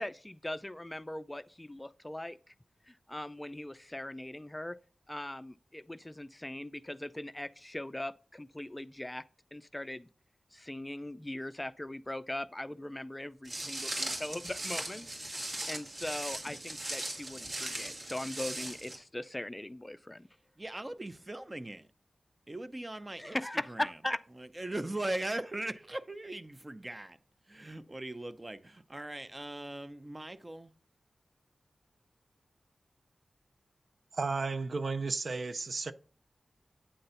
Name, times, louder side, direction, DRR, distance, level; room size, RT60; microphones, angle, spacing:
voice 1, 0.0-2.4 3.1-4.8 5.1-9.2 9.5-10.1 10.5-15.1 15.7-20.2 23.2-24.2, left 1 dB, 15° left, 0.4 m, -40 dB
Walk footsteps, 13.5-19.0, right 1 dB, 45° right, 2.4 m, -39 dB
voice 2, 20.6-21.9 22.5-23.4 23.7-24.0 24.4-27.2 27.5-30.7, right 1 dB, 30° right, 0.7 m, -39 dB
voice 3, 34.1-35.9, right 4 dB, 65° right, 0.5 m, -33 dB
8.9 x 3.8 x 5.7 m
cardioid pair, 55°, 0 cm